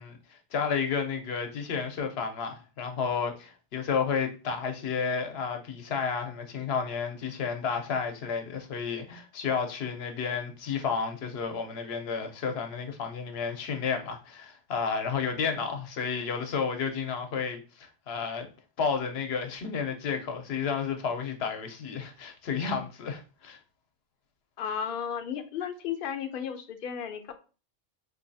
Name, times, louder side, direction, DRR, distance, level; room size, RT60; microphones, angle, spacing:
voice 1, 0.0-18.5 18.8-23.6, left 6 dB, 85° left, 0.9 m, -31 dB
voice 2, 24.6-27.3, left 8 dB, 65° left, 0.7 m, -34 dB
3.8 x 2.7 x 2.6 m
omnidirectional pair, 1.1 m